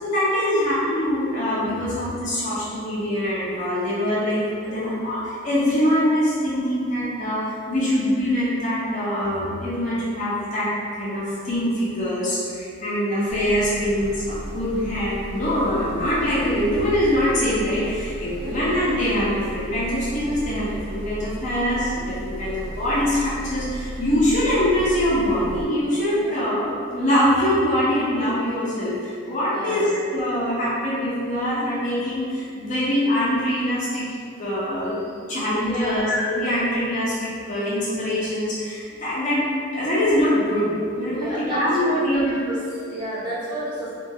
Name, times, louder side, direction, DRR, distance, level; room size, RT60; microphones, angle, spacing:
voice 1, 0.0-34.1 34.4-35.0 35.2-39.5 39.7-42.3, equal, 35° left, -9 dB, 0.4 m, -23 dB
sound 1, 13.3-25.6, right 1 dB, 80° right, 0.4 m, -35 dB
voice 2, 18.2-18.6 26.2-26.4 29.5-29.9 35.6-36.1 39.8-39.9 41.1-43.9, right 1 dB, 20° right, -9 dB, 0.6 m, -31 dB
2.3 x 2.2 x 2.6 m, 2.4 s
head